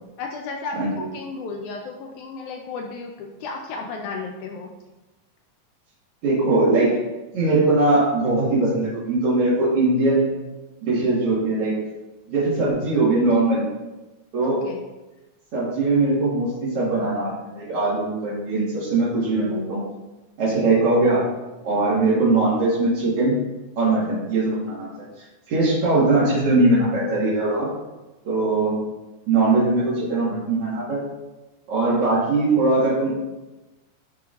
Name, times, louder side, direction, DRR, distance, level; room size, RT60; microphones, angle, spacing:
voice 1, 0.2-4.7 14.4-14.8, left 4 dB, 80° left, 2 dB, 1.7 m, -33 dB
voice 2, 0.7-1.1 6.2-6.9 7.3-10.4 10.8-11.7 12.3-13.6 14.3-14.6 15.5-19.8 20.4-21.2 21.6-23.4 23.8-24.9 25.5-27.7 28.2-28.8 29.3-31.0 31.7-33.2, right 2 dB, 50° right, -10 dB, 2.2 m, -20 dB
9.6 x 4.4 x 2.5 m, 1.1 s
omnidirectional pair, 4.0 m